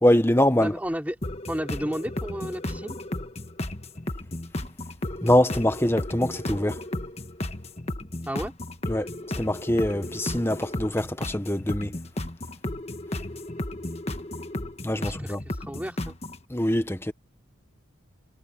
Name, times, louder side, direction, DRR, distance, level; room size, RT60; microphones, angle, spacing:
voice 1, 0.0-0.8 5.2-6.8 8.9-9.1 9.4-11.9 14.8-15.4 16.5-17.1, left 1 dB, 10° left, 1.0 m, -23 dB
voice 2, 0.6-1.2 1.5-3.0 8.3-8.5 15.0-16.2, equal, 5° right, 3.5 m, -32 dB
sound 1, 1.2-16.4, left 1 dB, 30° left, 1.4 m, -34 dB
head